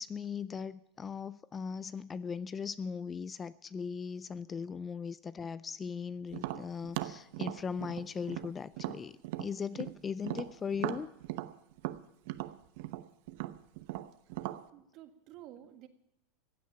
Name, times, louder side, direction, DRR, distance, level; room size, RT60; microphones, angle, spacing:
voice 1, 0.0-11.1, left 6 dB, 20° left, 18 dB, 0.4 m, -39 dB
Tap, 6.3-10.0 10.2-14.6, right 16 dB, 65° right, 0.8 m, -38 dB
voice 2, 14.7-15.9, right 12 dB, 50° right, 9 dB, 1.7 m, -51 dB
15.5 x 8.4 x 8.6 m, 0.81 s
supercardioid pair, 125°, 0 cm